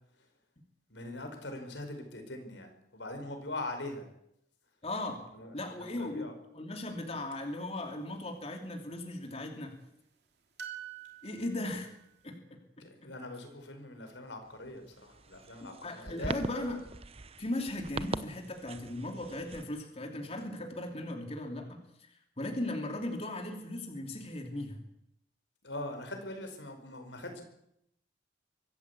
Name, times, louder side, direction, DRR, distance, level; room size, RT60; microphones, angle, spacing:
voice 1, 0.9-4.1 5.3-6.3 12.8-16.3 25.6-27.4, left 2 dB, 90° left, 6 dB, 5.2 m, -42 dB
voice 2, 4.8-5.2 5.5-9.7 11.2-11.9 12.2-12.4 15.6-16.9 17.4-24.8, left 1 dB, 35° left, 4 dB, 2.8 m, -37 dB
sound 1, 7.3-7.4 10.6-12.1, right 9 dB, 65° right, 2.9 m, -45 dB
sound 2, 14.4-19.7, right 3 dB, 35° right, 0.8 m, -42 dB
24.0 x 14.5 x 8.4 m, 0.77 s
head